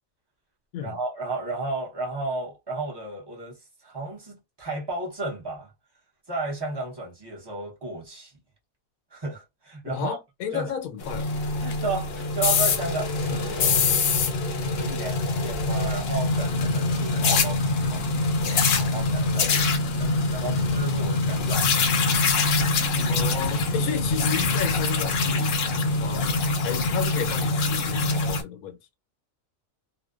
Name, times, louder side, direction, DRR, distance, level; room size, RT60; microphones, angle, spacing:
voice 1, 0.8-5.7 6.3-8.3 9.1-10.2 10.5-10.7 11.6-14.0 14.7-18.1 18.8-22.3, right 3 dB, 25° right, 0.6 m, -33 dB
voice 2, 9.8-11.3 21.0-21.5 23.1-25.5 26.0-28.8, left 9 dB, 90° left, 1.1 m, -33 dB
sound 1, 11.0-28.4, left 3 dB, 65° left, 0.6 m, -24 dB
2.5 x 2.1 x 2.3 m
omnidirectional pair, 1.4 m